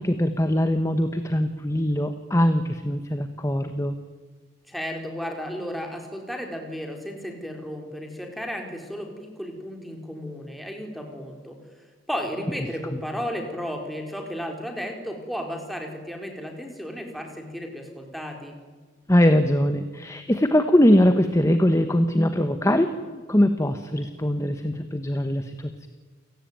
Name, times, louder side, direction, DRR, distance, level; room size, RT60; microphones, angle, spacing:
voice 1, 0.0-3.9 12.9-13.0 19.1-25.9, left 1 dB, 15° left, 8 dB, 1.2 m, -22 dB
voice 2, 4.7-11.6 12.1-18.6, equal, ahead, 3 dB, 4.2 m, -34 dB
28.5 x 18.0 x 9.3 m, 1.4 s
head